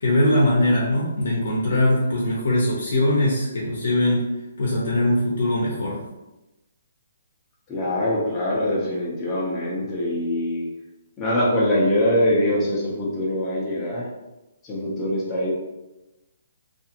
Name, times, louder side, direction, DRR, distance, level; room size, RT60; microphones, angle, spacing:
voice 1, 0.0-4.2 4.6-6.0, left 1 dB, 70° left, -4 dB, 0.7 m, -21 dB
voice 2, 7.7-10.7 11.2-14.1 14.6-15.5, left 1 dB, 15° left, -6 dB, 0.6 m, -23 dB
2.5 x 2.4 x 2.8 m, 1.0 s
hypercardioid pair, 160°, 0 cm